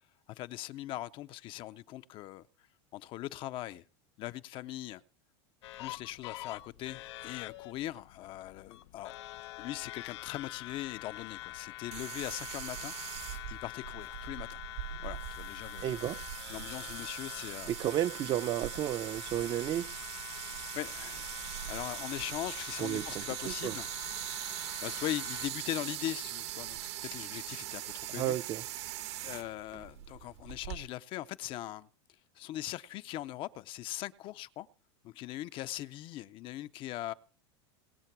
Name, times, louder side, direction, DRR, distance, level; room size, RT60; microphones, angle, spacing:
voice 1, 0.3-2.4 2.9-3.8 4.2-5.0 5.8-9.1 9.6-12.9 13.5-14.6 15.0-15.9 16.5-17.7 20.7-21.2 21.7-23.9 24.8-28.4 29.2-31.9 32.4-34.7 35.0-37.1, left 14 dB, 35° left, 0.6 m, -40 dB
sound 1, 5.6-25.5, left 17 dB, 90° left, 0.7 m, -46 dB
sound 2, 11.9-30.8, right 13 dB, 85° right, 2.2 m, -41 dB
voice 2, 15.8-16.2 17.7-19.8 22.8-23.8 28.1-28.6, right 12 dB, 30° right, 0.6 m, -32 dB
20.0 x 7.6 x 6.0 m
supercardioid pair, 155°, 14 cm